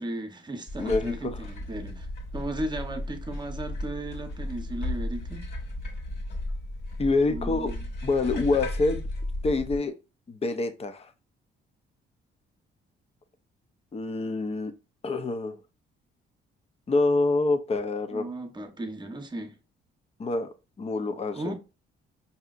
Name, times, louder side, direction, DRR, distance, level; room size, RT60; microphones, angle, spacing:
voice 1, 0.0-2.1 2.3-5.5 7.3-7.9 18.1-19.6 21.3-21.5, right 1 dB, 20° right, 0.9 m, -35 dB
sound 1, 0.7-9.8, left 1 dB, 50° left, 1.5 m, -35 dB
voice 2, 0.8-1.4 7.0-7.7 8.0-9.1 9.4-10.0 10.3-11.1 13.9-14.7 15.0-15.6 16.9-18.2 20.2-20.5 20.8-21.5, left 3 dB, 30° left, 0.6 m, -26 dB
4.8 x 2.8 x 2.4 m
cardioid pair, 90°, 20 cm